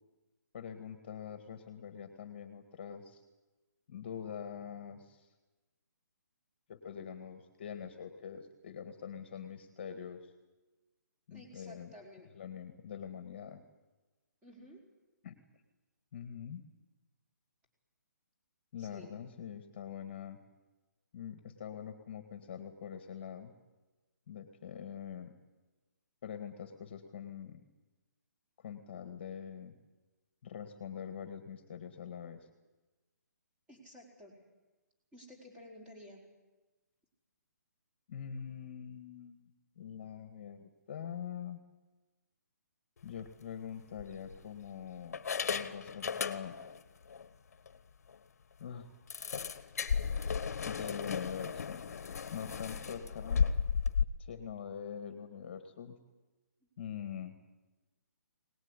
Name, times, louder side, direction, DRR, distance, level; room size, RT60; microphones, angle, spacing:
voice 1, 0.5-3.2 3.9-5.3 6.7-10.3 11.3-11.9 12.4-13.6 15.2-15.4 16.1-16.7 18.7-20.4 21.1-23.5 24.3-25.3 26.2-27.6 28.6-29.8 30.4-32.5 38.1-39.5 39.8-41.6 43.0-45.2 45.5-46.6 48.6-48.9 50.7-51.8 52.3-53.4 54.2-56.0 56.8-57.4, left 8 dB, 35° left, 8 dB, 1.9 m, -44 dB
voice 2, 11.3-12.3 14.4-14.8 18.8-19.2 33.7-34.4 35.1-36.2 52.9-53.3, left 1 dB, 10° right, 0 dB, 4.6 m, -53 dB
sound 1, 43.1-43.3 44.0-44.7 45.1-46.8 47.1-47.2 47.7-47.8 48.1-48.2 49.1-54.0, left 6 dB, 55° left, 1.4 m, -34 dB
22.5 x 19.5 x 9.9 m, 1.2 s
hypercardioid pair, 170°, 10 cm